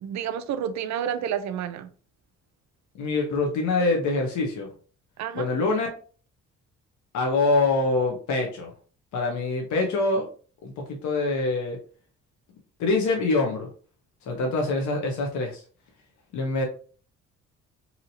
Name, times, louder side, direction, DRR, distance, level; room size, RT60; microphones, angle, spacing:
voice 1, 0.0-1.9 5.2-5.5, right 9 dB, 65° right, 0.5 m, -30 dB
voice 2, 3.0-4.7 5.3-5.9 7.1-8.7 9.1-10.3 10.6-11.8 12.8-13.7 14.3-15.6 16.3-16.7, left 3 dB, 75° left, 0.8 m, -25 dB
2.8 x 2.7 x 2.7 m
cardioid pair, 90°, 30 cm